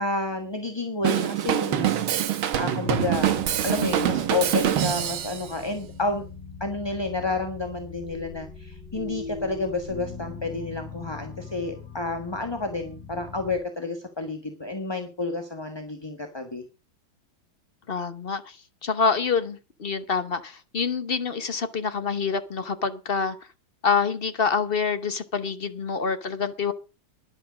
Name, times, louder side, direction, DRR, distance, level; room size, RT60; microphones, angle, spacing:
voice 1, 0.0-2.1 2.6-3.4 3.6-6.2 6.6-16.6, left 3 dB, 15° left, 5 dB, 1.1 m, -30 dB
Drum kit / Drum, 1.0-5.5, right 11 dB, 80° right, 1.8 m, -24 dB
sound 1, 2.9-13.6, left 4 dB, 80° left, 4.1 m, -41 dB
voice 2, 17.9-23.4 23.8-26.7, left 5 dB, 45° left, 11 dB, 0.8 m, -26 dB
12.0 x 11.0 x 5.2 m, 0.32 s
omnidirectional pair, 2.3 m